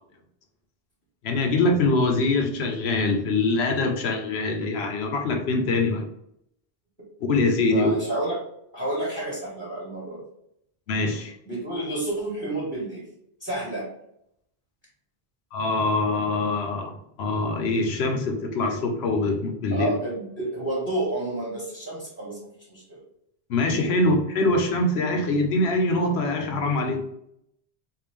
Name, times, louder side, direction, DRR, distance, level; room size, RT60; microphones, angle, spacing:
voice 1, 1.2-6.1 7.3-8.0 10.9-11.3 15.5-20.0 23.5-27.0, left 2 dB, 85° left, 4 dB, 1.0 m, -24 dB
voice 2, 7.7-8.4 8.7-10.2 11.5-13.0 13.4-13.9 19.7-22.4 22.7-23.0, right 1 dB, 15° left, -6 dB, 1.2 m, -30 dB
3.7 x 2.5 x 3.3 m, 0.75 s
omnidirectional pair, 1.0 m